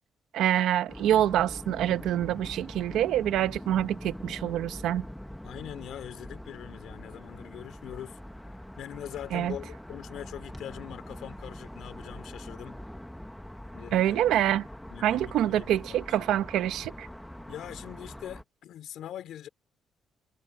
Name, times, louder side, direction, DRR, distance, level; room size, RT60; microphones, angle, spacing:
voice 1, 0.3-5.0 9.3-9.5 13.9-14.6 15.0-17.1, right 12 dB, 85° right, 1.0 m, -26 dB
sound 1, 0.9-18.4, equal, 5° left, 1.0 m, -43 dB
voice 2, 5.4-8.2 8.5-12.8 13.7-14.2 14.9-16.4 17.5-19.5, left 11 dB, 65° left, 2.8 m, -42 dB
cardioid pair, 170°, 0 cm